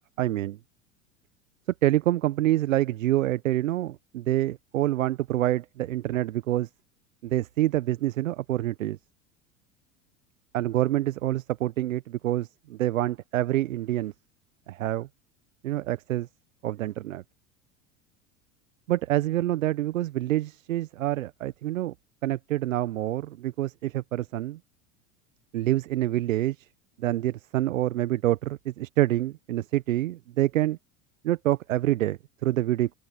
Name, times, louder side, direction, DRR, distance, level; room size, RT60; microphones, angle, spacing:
voice 1, 0.2-0.6 1.8-6.7 7.2-9.0 10.5-14.1 14.7-15.1 15.6-16.3 16.6-17.2 18.9-21.9 22.2-24.6 25.5-26.7 27.0-30.8 31.2-32.9, right 14 dB, 75° right, 1.2 m, -26 dB
hypercardioid pair, 80°, 40 cm